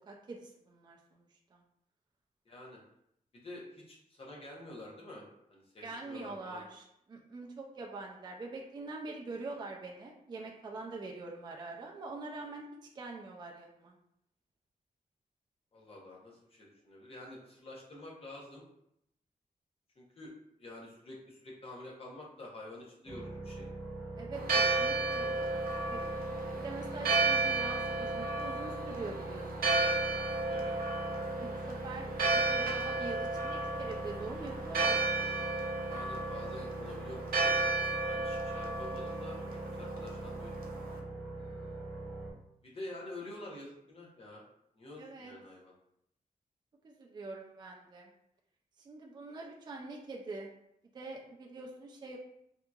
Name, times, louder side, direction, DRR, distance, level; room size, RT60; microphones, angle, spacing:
voice 1, 0.1-1.6 5.8-12.6 12.9-13.9 24.1-26.0 26.6-29.5 31.4-35.4 41.4-41.9 45.0-45.3 46.8-48.1 48.8-50.5 50.9-52.2, right 3 dB, 30° right, 0 dB, 0.3 m, -44 dB
voice 2, 2.5-2.8 3.3-5.2 5.5-6.6 15.7-18.6 20.0-20.3 20.6-23.7 30.5-30.7 35.9-37.8 38.1-40.6 42.6-44.4 44.8-45.7, left 2 dB, 40° left, -3 dB, 0.8 m, -48 dB
sound 1, 23.1-42.3, right 2 dB, 10° left, 0.8 m, -43 dB
Church bell, 24.3-41.0, right 3 dB, 80° right, 0.6 m, -33 dB
3.5 x 2.8 x 2.3 m, 0.75 s
wide cardioid pair, 170°, 15 cm